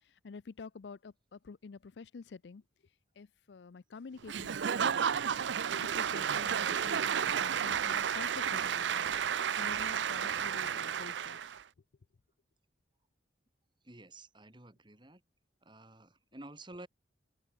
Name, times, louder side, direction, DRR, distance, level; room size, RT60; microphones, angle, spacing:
voice 1, 0.0-2.6 3.2-4.9 5.9-9.1 9.6-11.5, left 4 dB, 70° left, 0.5 m, -49 dB
Applause / Crowd, 4.3-11.6, right 8 dB, 80° right, 0.5 m, -32 dB
voice 2, 13.8-15.2 15.6-16.9, right 2 dB, 25° right, 3.1 m, -51 dB
open air
head